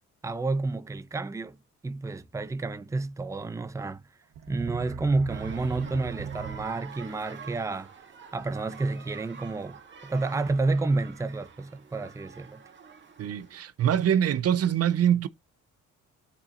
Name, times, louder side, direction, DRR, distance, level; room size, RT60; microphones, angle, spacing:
voice 1, 0.2-1.6 1.8-4.0 4.5-7.9 8.3-12.6, right 3 dB, 10° right, 0.6 m, -30 dB
sound 1, 4.3-7.1, right 8 dB, 75° right, 1.1 m, -38 dB
sound 2, 5.3-13.6, right 6 dB, 40° right, 1.9 m, -47 dB
voice 2, 13.2-15.3, right 9 dB, 55° right, 0.6 m, -24 dB
12.0 x 4.1 x 2.5 m
cardioid pair, 90°, 30 cm